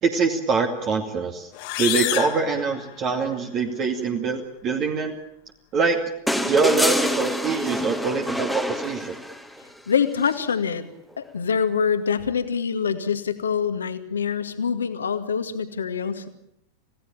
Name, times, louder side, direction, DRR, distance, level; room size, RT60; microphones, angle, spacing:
voice 1, 0.0-1.5 1.8-5.2 5.7-6.0 6.5-9.1, right 4 dB, 30° right, 3 dB, 2.4 m, -24 dB
sound 1, 1.5-3.4, left 16 dB, 45° left, 2.0 m, -29 dB
sound 2, 6.3-9.6 11.1-11.2, left 1 dB, ahead, 2.0 m, -26 dB
voice 2, 9.9-10.9 11.2-16.3, left 6 dB, 70° left, 9 dB, 2.1 m, -25 dB
27.0 x 17.0 x 8.9 m, 0.77 s
figure-of-eight pair, 90°, 0 cm